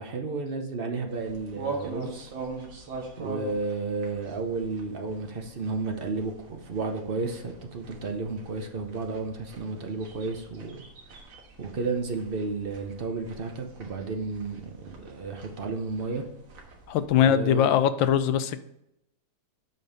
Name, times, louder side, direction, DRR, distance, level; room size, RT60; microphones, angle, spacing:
voice 1, 0.0-2.3 3.2-10.8 11.6-16.2 17.2-17.7, right 3 dB, 50° right, 3 dB, 0.6 m, -32 dB
sound 1, 1.1-17.1, right 3 dB, 75° right, 2.2 m, -43 dB
voice 2, 16.9-18.6, left 9 dB, 80° left, 12 dB, 1.3 m, -22 dB
8.2 x 5.4 x 4.1 m, 0.81 s
omnidirectional pair, 2.1 m